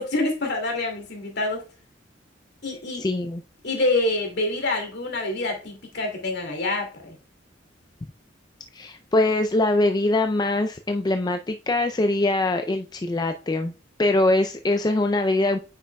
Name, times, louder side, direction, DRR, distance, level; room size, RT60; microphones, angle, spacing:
voice 1, 0.0-1.6 2.6-3.0 3.6-7.1, left 2 dB, 60° left, 3 dB, 2.3 m, -26 dB
voice 2, 3.0-3.4 8.7-13.7 14.0-15.6, left 2 dB, 20° left, 6 dB, 0.4 m, -23 dB
8.5 x 5.8 x 2.2 m, 0.34 s
head